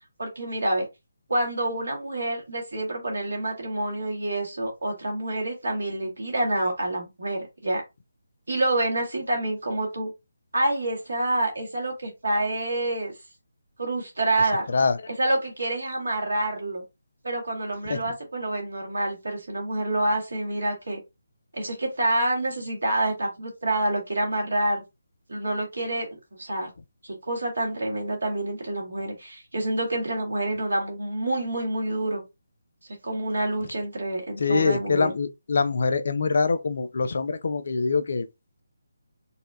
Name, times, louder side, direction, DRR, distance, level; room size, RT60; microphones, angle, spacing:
voice 1, 0.2-0.8 1.3-7.8 8.5-10.1 10.5-13.1 13.8-14.7 15.1-16.8 17.2-21.0 21.5-24.8 25.3-26.7 27.0-32.2 33.0-35.1, right 1 dB, 65° right, 1.6 m, -27 dB
voice 2, 34.4-38.3, left 4 dB, 50° left, 0.4 m, -24 dB
4.0 x 2.2 x 2.5 m
figure-of-eight pair, 150°, 0 cm